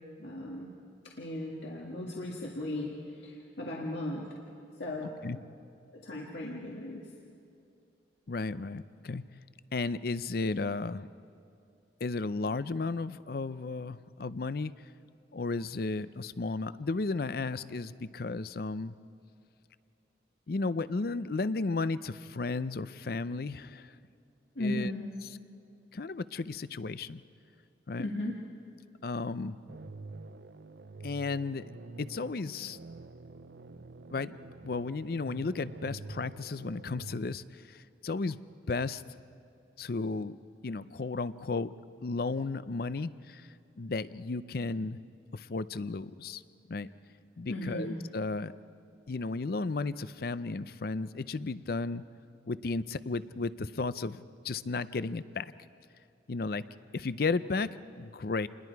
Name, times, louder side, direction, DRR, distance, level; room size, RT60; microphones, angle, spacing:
voice 1, 0.2-0.7 1.1-4.4 4.8-5.4 5.9-7.0 24.6-25.0 28.0-28.4 47.5-47.9, left 1 dB, 80° left, -2 dB, 1.8 m, -36 dB
voice 2, 8.3-9.3 9.7-11.1 12.0-14.7 15.3-18.9 20.5-23.9 24.6-24.9 25.9-27.2 27.9-28.1 29.0-29.6 31.0-31.7 32.0-32.8 34.1-34.3 34.6-37.4 38.0-38.4 38.7-39.0 39.8-40.4 40.6-41.7 42.0-43.4 43.8-45.0 45.3-46.4 46.7-46.9 47.4-48.5 49.1-52.0 52.5-55.5 56.3-56.7 56.9-58.5, left 3 dB, 55° left, 15 dB, 0.5 m, -34 dB
sound 1, 29.7-37.2, right 3 dB, 70° right, 0.6 m, -47 dB
28.0 x 20.5 x 4.7 m, 2.5 s
head